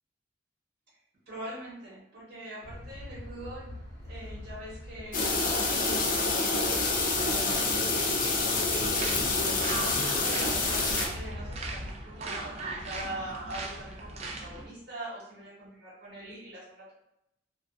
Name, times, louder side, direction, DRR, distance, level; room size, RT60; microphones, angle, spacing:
voice 1, 1.3-3.8 4.0-7.8 8.6-16.9, right 1 dB, 75° right, -9 dB, 1.0 m, -42 dB
sound 1, 2.6-11.9, left 1 dB, 85° left, 0.7 m, -42 dB
sound 2, 5.1-11.1, left 3 dB, 50° left, 0.4 m, -27 dB
sound 3, 8.8-14.7, right 2 dB, 35° right, 0.3 m, -38 dB
2.3 x 2.2 x 2.4 m, 0.83 s
head